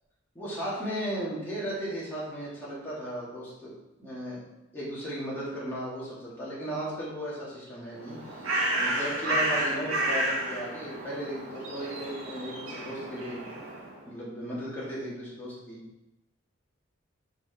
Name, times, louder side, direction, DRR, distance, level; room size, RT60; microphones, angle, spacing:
voice 1, 0.3-3.7 4.0-4.4 4.7-8.4 8.7-13.4 14.1-15.8, right 1 dB, 10° left, -9 dB, 2.7 m, -36 dB
Bird, 7.9-14.0, right 1 dB, 90° right, 1.8 m, -31 dB
6.0 x 5.1 x 5.0 m, 0.94 s
head